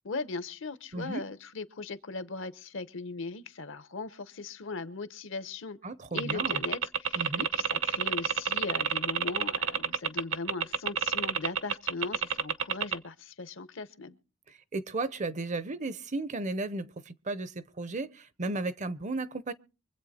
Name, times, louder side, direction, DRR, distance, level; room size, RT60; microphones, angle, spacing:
voice 1, 0.0-5.8 6.1-14.2, left 3 dB, 65° left, 0.9 m, -39 dB
voice 2, 0.9-1.2 5.8-6.6 7.2-7.5 14.5-19.5, right 2 dB, 35° right, 0.6 m, -34 dB
sound 1, 6.2-12.9, right 6 dB, 65° right, 0.8 m, -28 dB
24.5 x 8.2 x 4.2 m
head